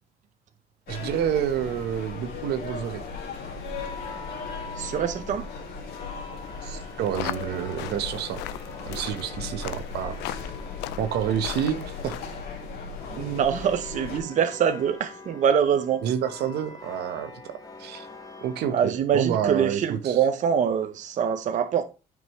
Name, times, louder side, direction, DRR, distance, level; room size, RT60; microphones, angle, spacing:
sound 1, 0.9-14.2, left 4 dB, 65° left, 2.4 m, -37 dB
voice 1, 0.9-3.0 6.6-8.4 8.9-10.2 11.0-12.2 16.0-18.1 18.4-20.2, right 9 dB, 75° right, 1.0 m, -29 dB
sound 2, 2.9-18.7, left 3 dB, 20° left, 1.5 m, -45 dB
voice 2, 4.8-5.5 13.1-16.0 18.7-21.8, right 8 dB, 45° right, 0.7 m, -24 dB
sound 3, 7.0-12.5, left 14 dB, 90° left, 0.5 m, -38 dB
9.5 x 5.3 x 3.1 m
cardioid pair, 110°, 17 cm